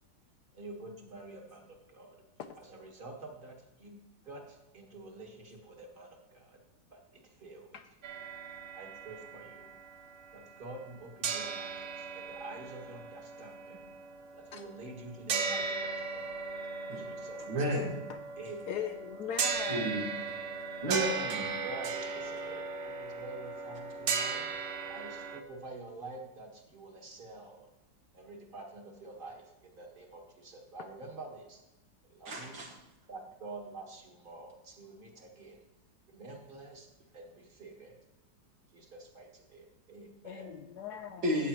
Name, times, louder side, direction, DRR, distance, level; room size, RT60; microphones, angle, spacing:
voice 1, 0.5-2.2 2.6-6.6 6.9-7.7 8.7-9.7 10.3-13.8 14.3-16.2 16.8-17.7 18.4-18.9 21.6-27.7 28.1-31.6 32.1-32.6 33.1-35.6 36.1-36.9 37.1-37.9 38.7-40.5, right 2 dB, 30° right, 2 dB, 1.6 m, -48 dB
sound 1, 8.0-11.0 11.2-25.4, right 5 dB, 55° right, 0.8 m, -37 dB
voice 2, 17.5-18.0 19.7-20.1 20.8-21.6 32.3-32.7 41.2-41.5, equal, 85° right, -1 dB, 2.7 m, -32 dB
voice 3, 18.7-20.0 30.8-30.9 40.2-41.4, left 8 dB, 70° left, 8 dB, 1.0 m, -40 dB
12.5 x 8.6 x 3.1 m, 0.99 s
omnidirectional pair, 2.0 m